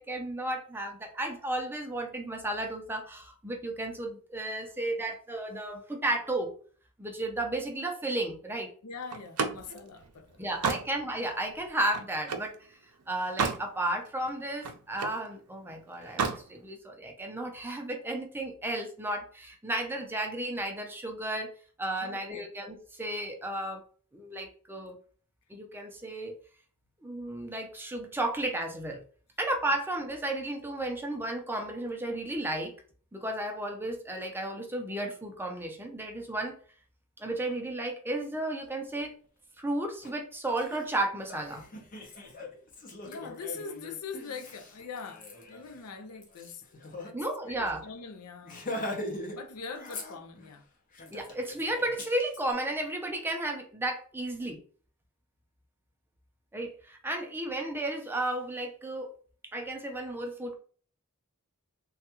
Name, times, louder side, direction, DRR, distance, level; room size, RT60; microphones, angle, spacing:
voice 1, 0.0-6.5 7.0-8.7 10.4-12.5 13.1-21.5 21.8-23.8 24.1-25.0 25.5-26.4 27.0-29.0 29.4-32.7 33.1-36.6 37.2-39.1 39.6-41.6 47.1-47.8 51.1-54.6 56.5-59.1 59.5-60.6, right 1 dB, 10° right, 0.5 m, -33 dB
voice 2, 8.8-10.4 10.7-10.9 22.0-22.4 43.1-47.2 47.5-48.7 49.3-50.7, left 5 dB, 85° left, 0.6 m, -43 dB
Slam, 9.1-12.5 13.0-13.7 14.1-15.2 16.0-16.4, right 5 dB, 80° right, 0.5 m, -33 dB
Laughter, 40.0-40.1 40.5-47.1 47.4-47.6 47.8-48.0 48.4-49.4 49.7-50.5 50.9-52.4, left 1 dB, 40° left, 0.7 m, -41 dB
3.3 x 2.3 x 2.9 m
head